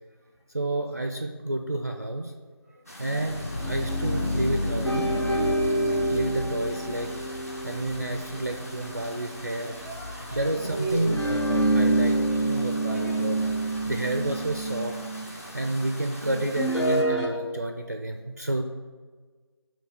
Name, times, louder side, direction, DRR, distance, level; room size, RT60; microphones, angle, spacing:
voice 1, 0.5-2.3 3.0-5.2 5.8-7.1 7.6-9.7 10.3-15.0 15.5-18.6, right 1 dB, 35° right, 4 dB, 0.4 m, -30 dB
voice 2, 2.7-3.3 8.3-8.4 8.7-8.9 9.7-11.2 12.9-13.2 16.2-16.4, right 2 dB, 5° left, -3 dB, 0.9 m, -36 dB
sound 1, 2.9-17.0, equal, 35° left, 1.0 m, -43 dB
sound 2, 3.2-14.7, left 1 dB, 65° left, 1.8 m, -34 dB
sound 3, 4.8-9.4 11.1-15.2 16.6-17.3, right 1 dB, 85° left, 1.8 m, -27 dB
9.4 x 3.2 x 6.6 m, 1.5 s
figure-of-eight pair, 170°, 14 cm